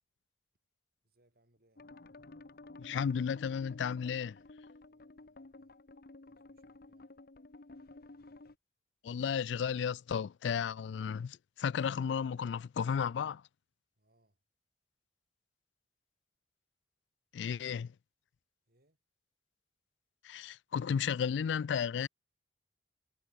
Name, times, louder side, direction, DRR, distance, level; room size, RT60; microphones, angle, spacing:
voice 1, 1.0-1.9 4.7-5.8 6.2-7.2 14.0-14.4 18.7-19.0, right 1 dB, 55° right, 6.3 m, -74 dB
sound 1, 1.8-8.5, left 2 dB, 55° left, 1.0 m, -53 dB
voice 2, 2.8-4.4 9.0-13.4 17.3-17.9 20.2-22.1, left 7 dB, 80° left, 0.3 m, -33 dB
head